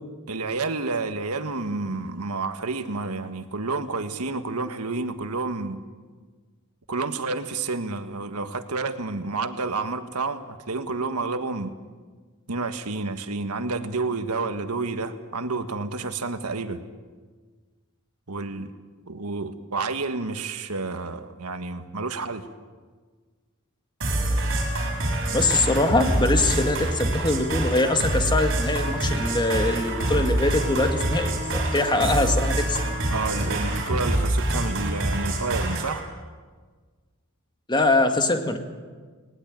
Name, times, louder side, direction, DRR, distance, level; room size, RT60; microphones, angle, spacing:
voice 1, 0.3-5.8 6.9-11.7 12.5-16.8 18.3-18.7 19.1-22.5 33.1-36.1, right 3 dB, 80° right, 9 dB, 1.6 m, -30 dB
sound 1, 24.0-36.0, right 1 dB, 60° right, 5.5 m, -26 dB
voice 2, 25.3-32.8 37.7-38.6, left 2 dB, 20° left, 6 dB, 2.0 m, -23 dB
Wind instrument woodwind instrument, 28.8-34.0, right 2 dB, 40° right, 1.7 m, -39 dB
20.0 x 19.5 x 9.1 m, 1.5 s
head